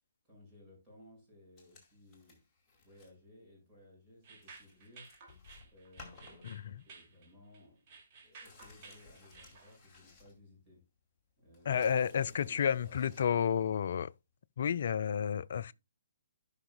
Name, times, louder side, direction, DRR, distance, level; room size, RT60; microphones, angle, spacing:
voice 1, 0.2-2.4 2.8-5.1 5.6-7.9 8.2-10.8 11.4-13.7 15.7-15.8, left 1 dB, 10° right, 5.9 m, -58 dB
sound 1, 1.6-3.2 3.5-3.7 4.1-4.2 4.4-7.0 7.3-7.4 7.7-10.8 11.2-13.3 14.3-14.4, left 3 dB, 15° left, 2.4 m, -59 dB
sound 2, 4.2-9.8, right 4 dB, 30° right, 2.4 m, -56 dB
voice 2, 6.4-6.8 11.7-14.1 14.6-15.7, left 8 dB, 50° left, 0.3 m, -31 dB
15.5 x 5.6 x 2.2 m
figure-of-eight pair, 130°, 0 cm